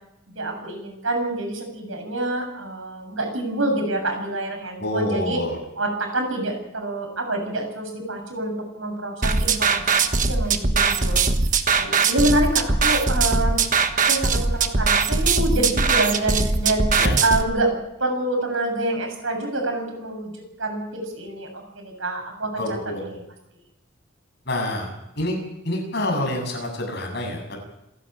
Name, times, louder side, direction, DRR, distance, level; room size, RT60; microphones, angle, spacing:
voice 1, 0.3-5.4 5.8-11.2 11.7-13.6 14.1-16.9 17.2-23.2, right 1 dB, 75° right, 3 dB, 7.5 m, -27 dB
voice 2, 4.8-5.6 11.7-11.9 17.0-17.1 22.6-23.2 24.5-24.9 25.2-27.6, left 1 dB, 55° left, 2 dB, 7.3 m, -27 dB
sound 1, 9.2-17.4, right 4 dB, 40° right, 1.3 m, -21 dB
27.5 x 11.5 x 8.9 m, 0.86 s
head